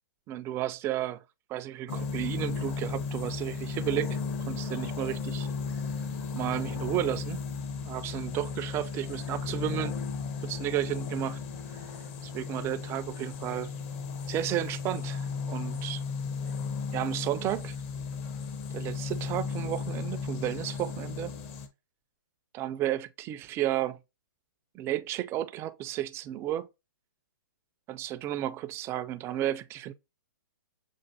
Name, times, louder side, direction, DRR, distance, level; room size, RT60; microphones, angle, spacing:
voice 1, 0.3-1.2 1.5-4.2 4.5-5.5 6.3-7.4 7.8-10.0 10.4-11.4 12.2-13.7 14.3-16.0 16.9-17.8 18.7-21.3 22.5-24.0 24.7-26.7 27.9-29.9, right 13 dB, 20° right, 0.4 m, -32 dB
sound 1, 1.9-21.7, left 5 dB, 40° left, 0.9 m, -35 dB
6.9 x 2.5 x 2.8 m
hypercardioid pair, 125°, 11 cm